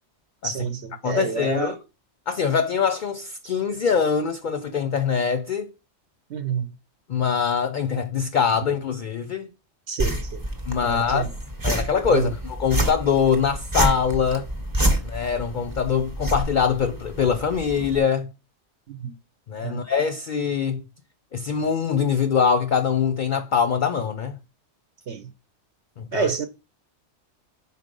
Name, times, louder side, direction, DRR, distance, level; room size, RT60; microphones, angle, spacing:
voice 1, 0.4-1.7 6.3-6.7 9.9-10.4 10.8-11.3 12.1-12.3 18.9-19.1 19.6-19.8 25.1-25.3 26.1-26.5, right 6 dB, 75° right, 1.0 m, -28 dB
voice 2, 1.0-1.8 2.3-5.7 7.1-9.5 10.7-11.3 11.6-14.5 15.0-18.3 19.5-20.8 21.3-24.4 26.0-26.3, left 6 dB, 55° left, 0.6 m, -23 dB
sound 1, 10.0-18.0, right 1 dB, 20° right, 0.9 m, -28 dB
5.0 x 4.1 x 5.2 m
omnidirectional pair, 1.2 m